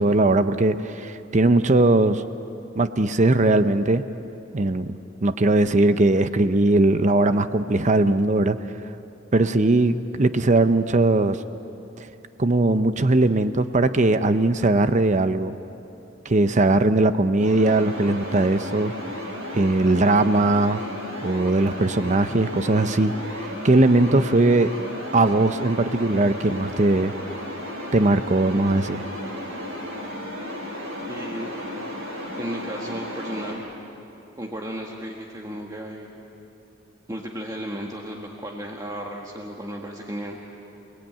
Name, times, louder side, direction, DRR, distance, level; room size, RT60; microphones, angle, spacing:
voice 1, 0.0-2.2 2.8-4.0 4.5-4.9 5.2-8.6 9.3-11.4 12.0-12.1 12.4-15.5 16.2-18.9 19.5-20.8 21.2-24.7 25.1-27.1 27.9-29.0, right 2 dB, 40° right, 11 dB, 0.7 m, -19 dB
sound 1, 17.4-33.5, left 1 dB, 80° right, 6.1 m, -34 dB
voice 2, 31.1-31.5 32.4-33.6 34.4-36.1 37.1-40.4, equal, 20° right, 0 dB, 1.5 m, -34 dB
28.5 x 19.0 x 9.0 m, 2.9 s
head